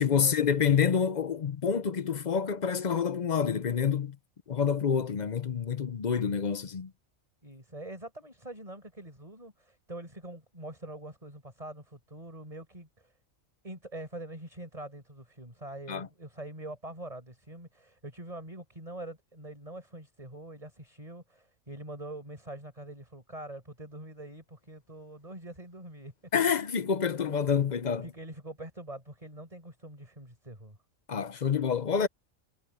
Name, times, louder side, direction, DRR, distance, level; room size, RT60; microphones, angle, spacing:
voice 1, 0.0-4.2 4.5-6.9 15.9-16.1 26.3-28.1 31.1-32.1, left 7 dB, 45° left, 0.7 m, -27 dB
voice 2, 7.4-13.1 13.6-26.1 28.0-30.8, right 1 dB, 25° right, 6.1 m, -44 dB
omnidirectional pair, 1.4 m